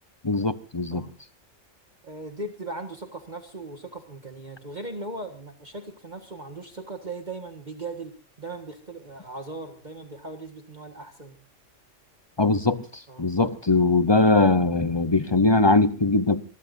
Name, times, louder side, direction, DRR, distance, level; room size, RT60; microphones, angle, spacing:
voice 1, 0.2-1.0 12.4-16.4, left 3 dB, 25° left, 0.8 m, -21 dB
voice 2, 2.0-11.4 13.1-13.3, right 2 dB, 35° right, 1.8 m, -38 dB
26.0 x 20.0 x 2.7 m
omnidirectional pair, 1.3 m